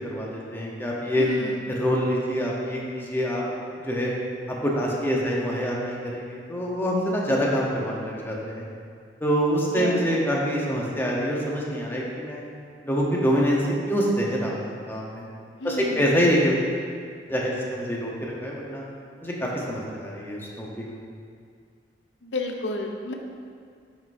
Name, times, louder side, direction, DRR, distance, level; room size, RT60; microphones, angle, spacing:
voice 1, 0.0-1.3 1.7-3.4 3.8-4.1 4.5-8.6 9.2-12.4 12.8-15.2 15.6-16.7 17.3-18.8 19.2-21.0, equal, 15° left, -3 dB, 0.9 m, -25 dB
voice 2, 1.2-1.6 9.8-10.0 15.6-16.0 22.2-23.1, left 2 dB, 90° left, 3 dB, 0.7 m, -31 dB
8.7 x 5.3 x 2.7 m, 2.2 s
head